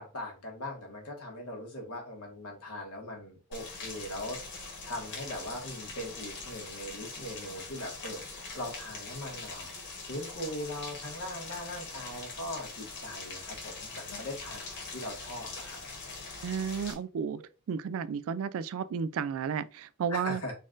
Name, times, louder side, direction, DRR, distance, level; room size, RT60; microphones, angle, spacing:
voice 1, 0.0-9.7 10.0-15.8 20.1-20.5, left 1 dB, 80° left, 1.3 m, -40 dB
Rain, 3.5-16.9, left 3 dB, 55° left, 1.2 m, -43 dB
voice 2, 16.4-17.4 17.7-20.4, right 6 dB, 65° right, 0.3 m, -32 dB
4.0 x 2.4 x 3.8 m
head